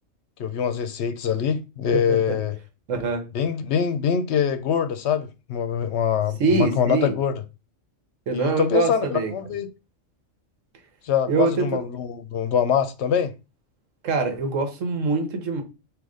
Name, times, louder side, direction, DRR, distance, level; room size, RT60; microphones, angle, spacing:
voice 1, 0.4-2.6 3.3-7.4 8.3-9.7 11.0-13.3, left 7 dB, 65° left, 0.8 m, -24 dB
voice 2, 1.9-2.4 2.9-3.2 6.4-7.1 8.3-9.3 11.3-11.8 14.0-15.6, right 4 dB, 90° right, 1.4 m, -24 dB
3.9 x 2.8 x 4.8 m
omnidirectional pair, 1.3 m